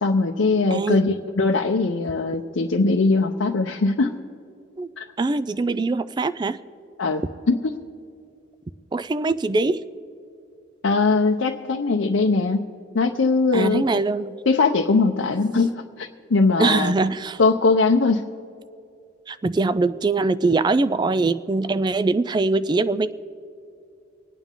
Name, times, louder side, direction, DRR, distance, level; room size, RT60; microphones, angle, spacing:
voice 1, 0.0-4.1 5.0-5.1 7.0-7.2 7.5-7.7 10.8-12.7 12.9-13.8 14.5-16.9 17.4-18.2, left 3 dB, 90° left, 1 dB, 0.7 m, -20 dB
voice 2, 0.7-1.2 4.8-4.9 5.2-6.6 8.9-9.8 13.5-14.4 16.6-17.4 19.3-23.1, right 3 dB, 25° right, 15 dB, 0.3 m, -22 dB
25.5 x 9.1 x 3.8 m, 2.5 s
head